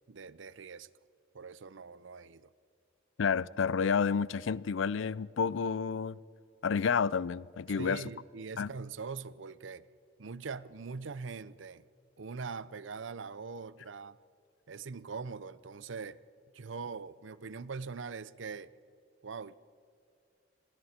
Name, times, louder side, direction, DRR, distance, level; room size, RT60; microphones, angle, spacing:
voice 1, 0.1-0.9 1.3-2.5 7.8-9.8 10.2-11.8 12.2-14.2 14.7-16.2 16.5-18.7 19.2-19.5, right 5 dB, 80° right, 0.6 m, -42 dB
voice 2, 3.2-6.2 6.6-8.0 8.6-8.7, left 6 dB, 85° left, 0.4 m, -30 dB
28.5 x 22.0 x 4.4 m
head